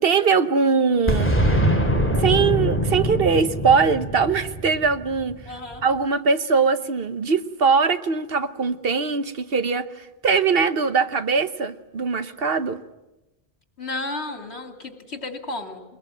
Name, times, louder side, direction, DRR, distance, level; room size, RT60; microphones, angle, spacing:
voice 1, 0.0-1.3 2.2-5.4 5.8-9.9 10.2-12.8, right 5 dB, 60° right, 11 dB, 1.2 m, -21 dB
Boom, 1.1-5.7, equal, 10° left, 2.3 m, -23 dB
voice 2, 5.4-5.8 13.8-15.8, left 2 dB, 75° left, 5 dB, 3.0 m, -33 dB
22.0 x 21.5 x 9.1 m, 1.0 s
omnidirectional pair, 1.1 m